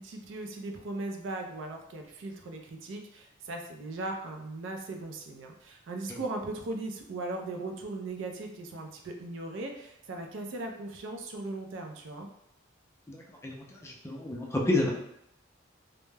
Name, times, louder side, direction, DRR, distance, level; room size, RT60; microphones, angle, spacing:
voice 1, 0.0-12.3, right 2 dB, 75° right, 3 dB, 0.4 m, -38 dB
voice 2, 13.8-14.9, left 2 dB, 15° left, -2 dB, 0.4 m, -29 dB
2.1 x 2.0 x 3.2 m, 0.79 s
head